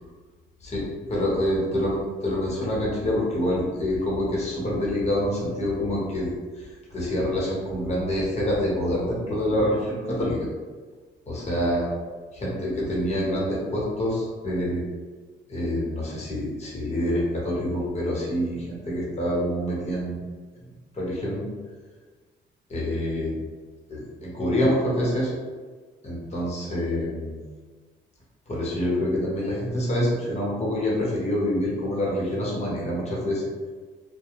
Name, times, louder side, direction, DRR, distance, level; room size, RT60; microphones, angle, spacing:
voice 1, 0.6-6.3 6.6-10.5 11.3-11.8 12.3-14.8 15.5-20.2 20.9-21.5 22.7-23.3 23.9-25.3 26.0-27.4 28.5-33.4, left 1 dB, 35° left, -5 dB, 1.0 m, -26 dB
2.3 x 2.2 x 3.0 m, 1.4 s
cardioid pair, 90°, 20 cm